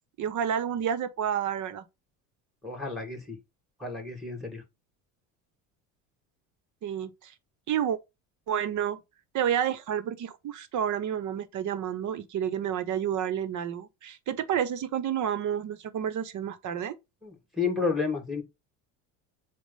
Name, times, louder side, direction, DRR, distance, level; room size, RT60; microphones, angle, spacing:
voice 1, 0.2-1.8 6.8-7.3 7.7-8.0 8.5-9.0 9.3-16.9, right 9 dB, 50° right, 1.2 m, -30 dB
voice 2, 2.6-3.4 3.8-4.6 17.2-18.4, left 4 dB, ahead, 2.8 m, -31 dB
7.2 x 2.5 x 5.6 m
supercardioid pair, 90°, 38 cm